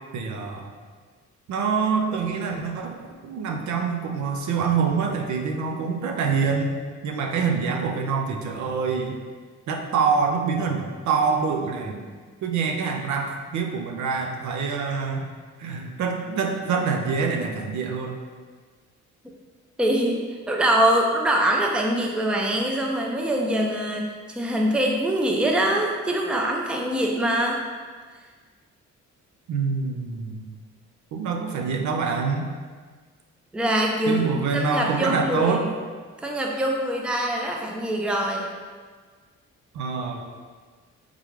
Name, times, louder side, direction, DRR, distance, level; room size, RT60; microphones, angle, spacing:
voice 1, 0.1-0.7 1.5-6.8 7.0-9.2 9.7-12.1 12.4-15.3 15.6-18.2 29.5-30.5 31.1-32.5 34.1-35.7 39.7-40.2, right 5 dB, 70° right, 3 dB, 0.6 m, -25 dB
voice 2, 19.8-20.2 20.5-27.6 33.5-34.2 34.5-35.7 36.2-38.5, right 1 dB, 5° right, 0 dB, 0.4 m, -23 dB
3.7 x 3.2 x 3.1 m, 1.5 s
cardioid pair, 90°, 30 cm